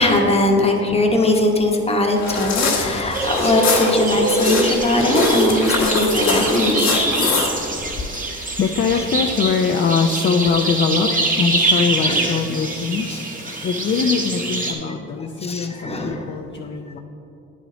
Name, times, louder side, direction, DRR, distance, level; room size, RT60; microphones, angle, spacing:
voice 1, 0.0-7.5 11.6-11.8 12.1-12.3 13.1-13.2 13.4-13.7 15.4-16.2, left 2 dB, 20° left, 1 dB, 1.0 m, -20 dB
sound 1, 2.2-8.0, left 4 dB, 65° left, 1.4 m, -24 dB
sound 2, 3.1-14.7, right 2 dB, 25° right, 1.2 m, -23 dB
voice 2, 8.3-11.1 11.4-17.0, left 5 dB, 40° left, 3 dB, 0.5 m, -22 dB
9.8 x 5.0 x 3.9 m, 2.7 s
cardioid pair, 90°, 30 cm